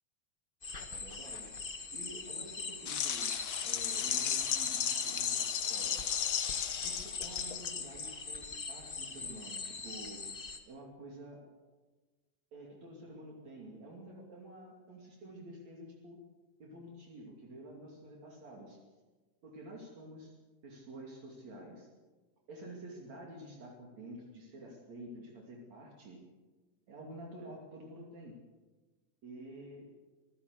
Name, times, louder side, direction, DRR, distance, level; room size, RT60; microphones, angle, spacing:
sound 1, 0.6-10.6, left 4 dB, 55° left, 0.6 m, -41 dB
voice 1, 0.9-1.5 1.9-3.3 3.6-6.0 6.8-10.2 10.7-11.4 12.5-16.2 16.6-18.8 19.4-20.3 20.6-21.9 22.5-26.2 26.9-28.4 29.2-29.9, right 1 dB, 60° right, -1 dB, 4.0 m, -49 dB
sound 2, 2.9-8.1, left 10 dB, 70° left, 1.2 m, -35 dB
26.5 x 15.5 x 6.6 m, 1.2 s
omnidirectional pair, 3.5 m